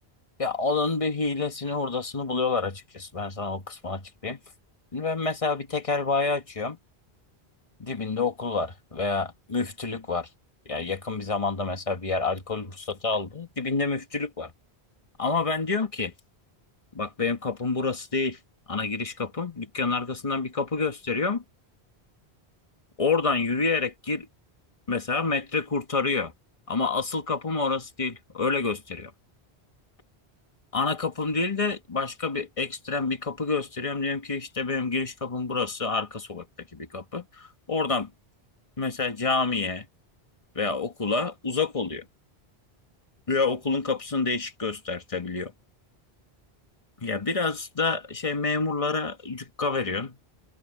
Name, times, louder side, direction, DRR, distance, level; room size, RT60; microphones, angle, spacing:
voice 1, 0.4-4.4 4.9-6.8 7.8-10.3 10.7-14.5 15.2-16.1 16.9-18.4 18.7-21.4 23.0-24.3 24.9-26.3 26.7-29.1 30.7-38.1 38.8-39.9 40.5-42.0 43.3-45.5 47.0-50.2, left 4 dB, 30° left, 1.6 m, -28 dB
omnidirectional pair, 1.1 m